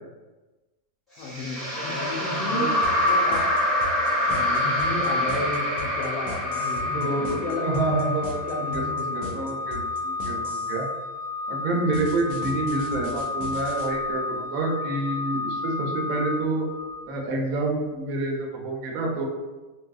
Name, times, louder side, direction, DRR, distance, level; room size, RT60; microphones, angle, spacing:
voice 1, 1.2-3.6 4.3-9.6, left 2 dB, 70° left, 0 dB, 1.0 m, -33 dB
sound 1, 1.2-8.5, left 1 dB, ahead, 0.9 m, -26 dB
sound 2, 2.8-10.8 11.9-13.9, left 1 dB, 85° left, 1.1 m, -38 dB
Organ, 6.4-17.2, left 3 dB, 45° right, 0.6 m, -31 dB
voice 2, 6.9-8.2 8.7-10.9 11.5-16.6 17.1-19.3, right 2 dB, 80° right, 0 dB, 1.0 m, -28 dB
2.9 x 2.6 x 2.3 m, 1.2 s
omnidirectional pair, 1.5 m